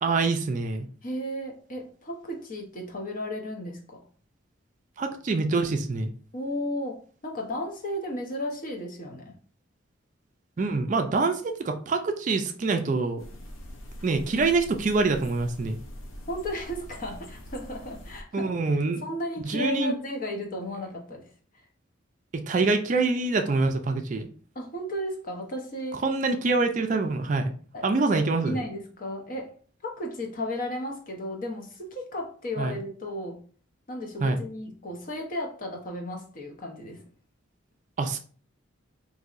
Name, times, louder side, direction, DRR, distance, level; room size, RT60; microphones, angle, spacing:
voice 1, 0.0-0.9 5.0-6.1 10.6-13.2 14.0-15.8 18.3-19.0 19.4-19.9 22.3-24.3 25.9-27.5 27.8-28.6 32.6-32.8 34.2-34.4 38.0-38.2, right 3 dB, 40° right, 5 dB, 0.3 m, -25 dB
voice 2, 1.0-4.0 6.3-9.4 16.3-18.5 19.0-21.3 21.5-21.6 24.6-26.0 27.7-27.9 28.1-29.5 29.8-33.4 33.9-37.0, left 1 dB, 40° left, 2 dB, 0.7 m, -34 dB
sound 1, 13.2-18.2, equal, 80° left, 0.7 m, -43 dB
4.0 x 2.6 x 2.4 m, 0.43 s
head